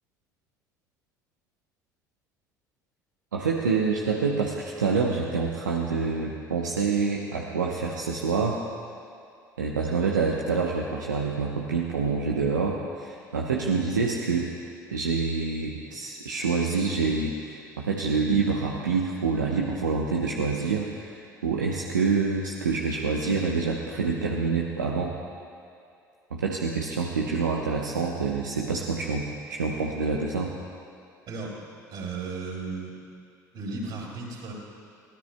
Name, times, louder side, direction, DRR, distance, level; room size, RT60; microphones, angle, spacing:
voice 1, 3.3-8.6 9.6-14.5 14.9-25.1 26.3-30.5, right 4 dB, 85° right, -1 dB, 0.8 m, -27 dB
voice 2, 31.3-31.6 31.9-33.0 33.5-34.5, right 3 dB, 50° right, -3 dB, 4.1 m, -35 dB
22.5 x 16.0 x 2.2 m, 2.4 s
figure-of-eight pair, 60°, 10 cm